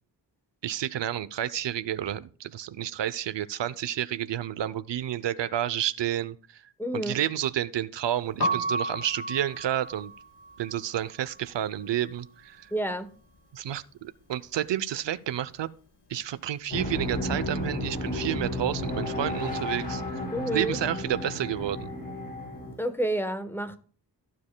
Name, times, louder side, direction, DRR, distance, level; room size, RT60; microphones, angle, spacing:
voice 1, 0.6-6.6 6.9-10.1 10.6-12.7 13.5-15.7 16.1-20.2 20.5-21.9, right 11 dB, 85° right, 0.7 m, -30 dB
voice 2, 6.8-7.2 12.7-13.1 20.3-20.8 22.8-23.8, right 1 dB, 5° left, 1.0 m, -29 dB
Piano, 8.3-14.2 14.5-16.1 16.3-22.8, right 1 dB, 65° left, 2.8 m, -36 dB
sound 1, 16.7-22.7, left 1 dB, 20° left, 4.5 m, -33 dB
14.0 x 7.5 x 2.2 m
wide cardioid pair, 105°, 42 cm